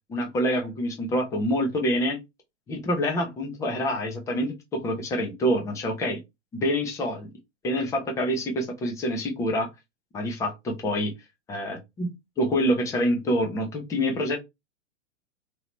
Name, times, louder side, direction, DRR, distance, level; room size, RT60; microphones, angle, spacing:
voice 1, 0.1-2.2 2.7-6.2 6.6-7.3 7.6-9.7 10.1-11.1 11.5-14.4, equal, 10° left, 0.7 m, -26 dB
2.9 x 2.9 x 3.0 m
figure-of-eight pair, 110°, 37 cm